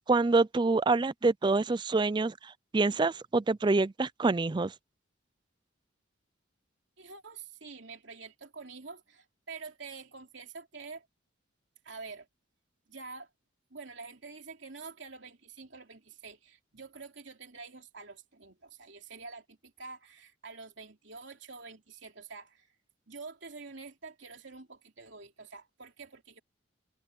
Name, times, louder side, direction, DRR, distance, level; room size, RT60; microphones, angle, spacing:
voice 1, 0.1-4.7, right 3 dB, 25° right, 0.4 m, -26 dB
voice 2, 7.0-11.1 11.8-12.3 12.9-13.3 13.7-22.7 23.1-26.4, right 4 dB, 65° right, 3.2 m, -47 dB
head